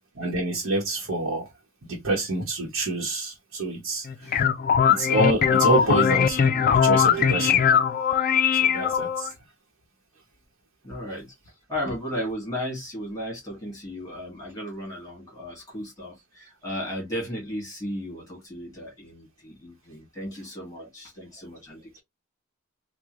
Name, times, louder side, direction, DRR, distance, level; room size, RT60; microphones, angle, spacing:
voice 1, 0.2-1.5 1.9-4.4 4.9-7.8 8.5-9.3, right 2 dB, 90° right, 1.0 m, -27 dB
sound 1, 4.0-9.3, left 7 dB, 45° left, 0.4 m, -20 dB
voice 2, 10.8-11.3 11.7-22.0, equal, 15° left, 1.9 m, -35 dB
3.6 x 2.2 x 3.0 m
head